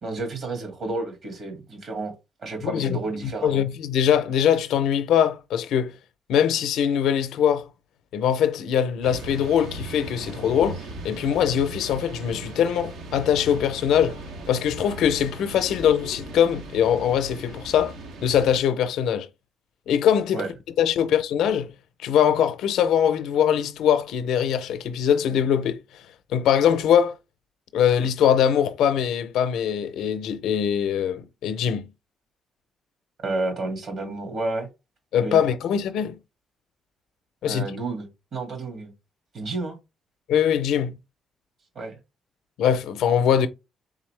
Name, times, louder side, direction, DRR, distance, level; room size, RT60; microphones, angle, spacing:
voice 1, 0.0-2.1 2.4-3.6 20.3-20.5 33.2-34.7 35.2-35.4 37.4-38.9 39.3-39.8 41.8-42.0, right 3 dB, 60° right, 2.1 m, -31 dB
voice 2, 2.6-3.0 3.4-6.0 6.3-7.6 8.1-10.8 11.0-14.2 14.5-17.9 18.2-19.3 19.9-20.4 20.8-21.7 22.0-25.8 26.3-27.1 27.7-31.9 35.1-36.2 37.4-37.6 40.3-41.0 42.6-43.5, left 9 dB, 85° left, 0.5 m, -22 dB
sound 1, 9.0-18.6, right 2 dB, 85° right, 0.9 m, -38 dB
3.8 x 3.6 x 3.2 m
cardioid pair, 90°, 0 cm